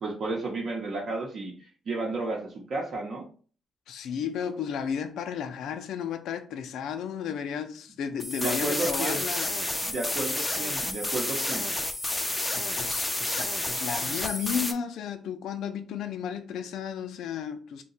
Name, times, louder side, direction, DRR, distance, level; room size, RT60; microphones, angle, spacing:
voice 1, 0.0-1.5 1.9-3.3 8.4-9.2 9.8-11.6, right 3 dB, 55° right, 0.7 m, -32 dB
voice 2, 3.9-9.5 12.5-17.8, left 7 dB, 80° left, 0.4 m, -33 dB
sound 1, 8.2-14.7, left 2 dB, 15° left, 0.4 m, -30 dB
2.7 x 2.2 x 4.0 m
cardioid pair, 90°, 0 cm